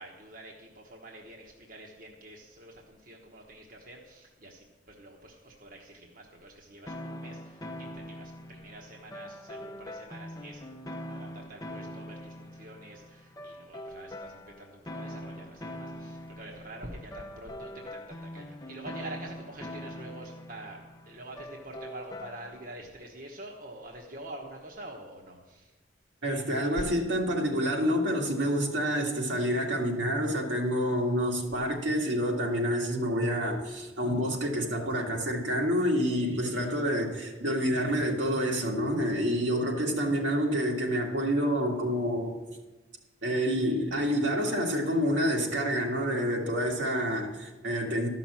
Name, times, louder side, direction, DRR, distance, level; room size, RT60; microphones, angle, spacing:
voice 1, 0.0-25.7, right 1 dB, 45° right, 0 dB, 1.2 m, -46 dB
sound 1, 6.9-22.8, left 1 dB, 20° left, 0.6 m, -43 dB
voice 2, 26.2-42.4 43.2-48.1, equal, 80° right, 0 dB, 2.1 m, -28 dB
13.5 x 6.0 x 7.3 m, 1.2 s
head